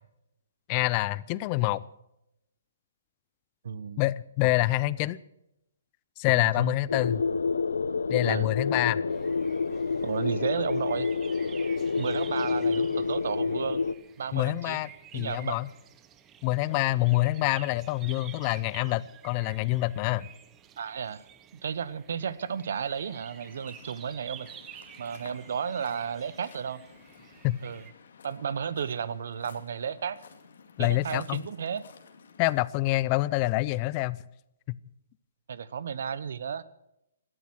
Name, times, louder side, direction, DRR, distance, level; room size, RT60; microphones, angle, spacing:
voice 1, 0.7-1.8 4.0-5.2 6.2-7.2 8.1-9.0 14.3-15.7 16.4-20.3 27.4-27.6 30.8-31.4 32.4-34.2 34.7-34.8, left 19 dB, 30° left, 20 dB, 0.5 m, -26 dB
voice 2, 3.6-4.0 6.3-6.8 7.1-7.3 8.3-8.5 10.0-11.1 12.0-13.8 14.2-14.8 15.1-15.6 20.8-21.3 21.5-24.5 25.0-26.8 27.6-27.8 28.2-30.2 30.8-31.8 35.5-36.6, right 7 dB, 65° right, 18 dB, 0.9 m, -33 dB
sound 1, 6.9-13.9, left 4 dB, 85° left, 0.7 m, -28 dB
sound 2, 9.1-27.9, right 10 dB, 20° right, 0.9 m, -51 dB
Waves surf, 22.8-32.6, left 6 dB, 65° left, 2.3 m, -54 dB
18.0 x 12.5 x 6.2 m, 0.83 s
hypercardioid pair, 140°, 0 cm